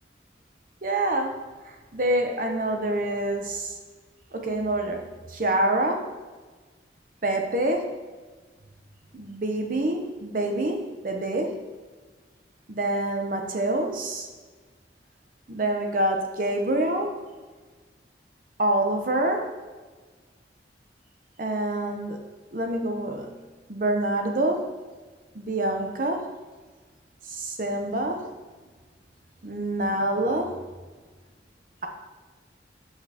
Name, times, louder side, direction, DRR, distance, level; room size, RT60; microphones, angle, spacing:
voice 1, 0.8-3.8 4.3-6.1 7.2-8.0 9.1-11.7 12.7-14.3 15.5-17.2 18.6-19.5 21.4-22.2 22.5-23.4 23.7-24.8 25.3-26.3 27.3-28.3 29.4-30.6, right 1 dB, 50° right, 3 dB, 0.8 m, -26 dB
7.9 x 5.7 x 2.9 m, 1.4 s
head